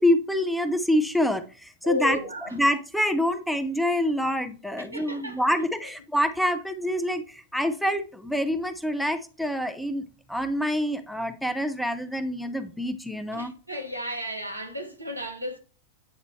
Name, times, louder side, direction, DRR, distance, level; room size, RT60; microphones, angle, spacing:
voice 1, 0.0-2.2 2.5-13.5, equal, ahead, 0.7 m, -26 dB
voice 2, 1.8-2.5 4.8-5.4 13.3-15.6, left 1 dB, 85° right, 1.1 m, -34 dB
8.7 x 4.0 x 3.0 m
figure-of-eight pair, 90°, 0 cm